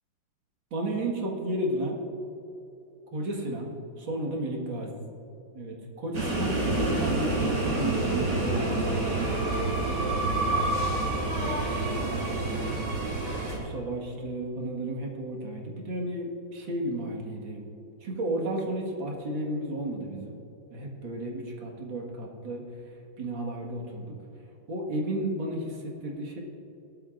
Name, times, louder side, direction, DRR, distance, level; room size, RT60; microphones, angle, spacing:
voice 1, 0.7-2.0 3.1-4.9 5.5-10.0 10.4-13.0 13.5-17.6 18.0-20.4 20.7-22.6 23.2-24.1 24.7-26.4, right 1 dB, 80° right, -1 dB, 2.5 m, -33 dB
sound 1, 6.1-13.6, right 2 dB, 45° right, 3.1 m, -28 dB
18.0 x 11.5 x 2.5 m, 3.0 s
omnidirectional pair, 2.1 m